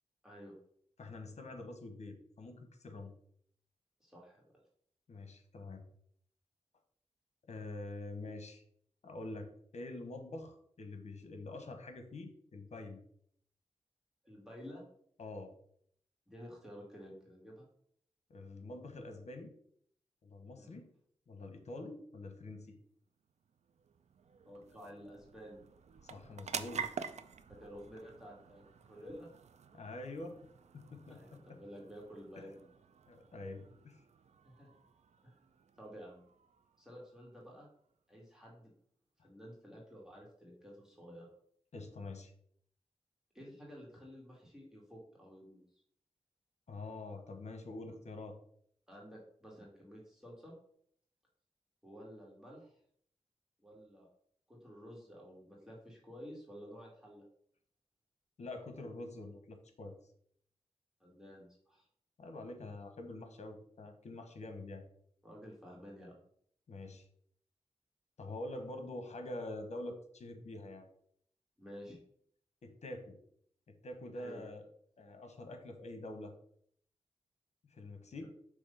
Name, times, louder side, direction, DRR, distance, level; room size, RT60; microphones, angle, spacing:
voice 1, 0.2-0.5 4.0-4.4 14.2-14.8 16.3-17.7 20.6-20.8 24.5-25.6 27.5-29.3 31.1-32.6 34.4-34.7 35.2-35.4 35.8-36.2 36.8-37.7 38.1-38.7 39.2-41.3 43.3-45.8 48.9-50.5 51.8-52.8 53.6-54.1 54.5-57.2 61.0-61.9 65.2-66.2 71.6-72.0 74.1-74.4 78.2-78.3, equal, 5° right, -4 dB, 2.2 m, -52 dB
voice 2, 1.0-3.1 5.1-5.8 7.5-8.6 9.0-13.0 15.2-15.5 18.3-19.5 20.2-20.9 21.3-22.8 26.0-26.8 29.7-30.3 30.7-31.2 31.5-31.6 32.4-32.5 33.1-34.0 41.7-42.3 46.7-48.4 58.4-59.9 62.2-64.8 66.7-67.1 68.2-70.9 72.6-73.2 73.7-74.7 75.0-76.3 77.7-78.3, left 2 dB, 80° left, 6 dB, 1.1 m, -46 dB
sound 1, 23.1-37.9, right 6 dB, 75° right, 0.4 m, -49 dB
6.2 x 3.2 x 5.5 m, 0.64 s
wide cardioid pair, 85°, 11 cm